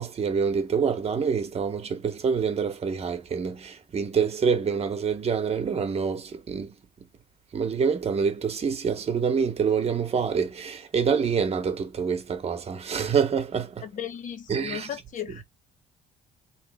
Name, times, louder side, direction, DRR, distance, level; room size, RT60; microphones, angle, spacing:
voice 1, 0.0-6.7 7.5-13.8 14.5-14.9, right 6 dB, 35° right, 1.1 m, -26 dB
voice 2, 13.8-15.4, left 9 dB, 50° left, 1.0 m, -36 dB
3.7 x 3.2 x 3.5 m
cardioid pair, 110°, 17 cm